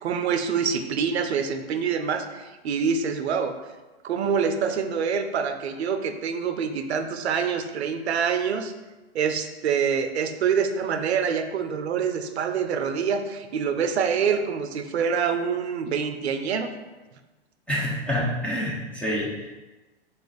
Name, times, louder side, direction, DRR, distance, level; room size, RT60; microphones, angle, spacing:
voice 1, 0.0-3.5 4.0-8.7 9.1-16.7, right 6 dB, 90° right, 8 dB, 0.5 m, -26 dB
voice 2, 17.7-19.5, left 1 dB, 5° left, -5 dB, 0.3 m, -27 dB
3.8 x 2.4 x 3.8 m, 1.2 s
hypercardioid pair, 125°, 32 cm